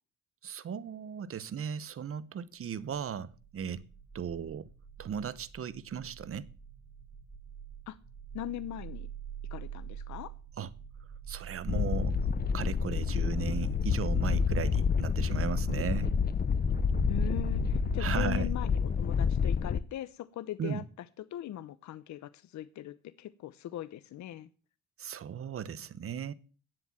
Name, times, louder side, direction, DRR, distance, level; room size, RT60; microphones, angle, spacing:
voice 1, 0.4-3.8 4.1-4.7 5.0-6.5 10.6-10.7 11.3-12.2 12.5-16.1 18.0-18.5 20.6-20.8 25.0-26.3, right 7 dB, 50° right, 0.9 m, -36 dB
sound 1, 3.3-18.2, right 9 dB, 25° right, 4.7 m, -42 dB
voice 2, 8.3-9.1 9.5-10.3 17.1-20.8 21.2-24.5, left 13 dB, 70° left, 0.8 m, -40 dB
sound 2, 11.7-19.8, left 6 dB, 30° left, 0.7 m, -29 dB
9.5 x 7.7 x 8.6 m
cardioid pair, 90°, 30 cm